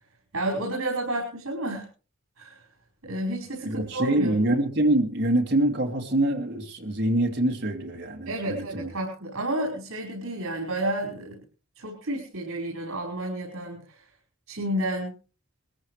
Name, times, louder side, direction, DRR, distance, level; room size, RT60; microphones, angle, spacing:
voice 1, 0.3-1.9 2.4-2.7 3.0-4.4 8.2-11.4 11.7-14.1 14.5-15.2, right 1 dB, 80° right, -2 dB, 5.0 m, -31 dB
voice 2, 3.6-8.9, right 1 dB, 50° right, 2 dB, 2.4 m, -25 dB
23.0 x 14.0 x 3.3 m, 0.37 s
head